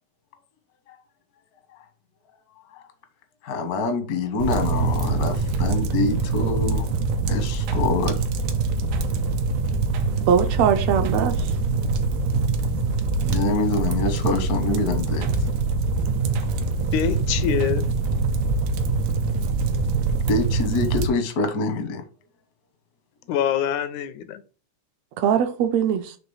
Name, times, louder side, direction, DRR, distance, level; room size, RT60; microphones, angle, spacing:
voice 1, 3.4-6.9 7.3-8.2 13.2-15.3 20.3-22.0, left 3 dB, 70° left, 0.8 m, -25 dB
sound 1, 4.4-21.1, right 3 dB, 90° right, 2.2 m, -24 dB
voice 2, 10.3-11.5 25.2-26.1, right 8 dB, 75° right, 1.7 m, -21 dB
voice 3, 16.9-17.9 23.3-24.4, left 9 dB, 90° left, 2.1 m, -25 dB
5.8 x 3.3 x 5.5 m
omnidirectional pair, 3.4 m